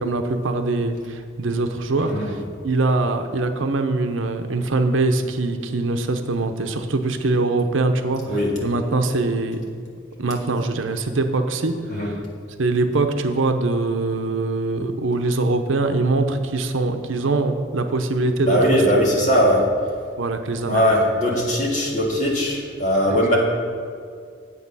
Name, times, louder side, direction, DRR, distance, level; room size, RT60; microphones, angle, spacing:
voice 1, 0.0-2.4 2.6-9.6 10.2-12.2 12.6-18.8 19.2-19.3 20.2-20.9 23.1-23.4, right 2 dB, 80° right, 6 dB, 0.7 m, -23 dB
voice 2, 18.4-19.6 20.7-23.4, equal, 40° left, -3 dB, 2.0 m, -19 dB
8.4 x 8.0 x 5.5 m, 2.2 s
head